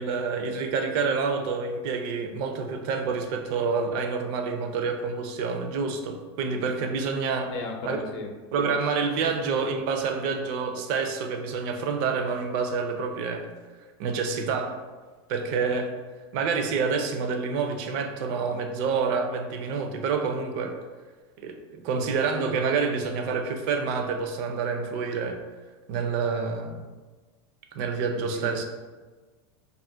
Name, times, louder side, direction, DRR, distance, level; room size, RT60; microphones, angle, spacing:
voice 1, 0.0-7.5 7.8-8.0 8.5-13.5 14.0-14.7 15.3-15.9 16.3-20.8 21.4-25.4 25.9-26.9 27.7-28.6, right 5 dB, 60° right, 5 dB, 0.4 m, -28 dB
voice 2, 7.5-8.3 9.2-9.4 28.3-28.6, left 3 dB, 65° left, 3 dB, 0.6 m, -35 dB
2.4 x 2.1 x 3.6 m, 1.3 s
supercardioid pair, 125°, 14 cm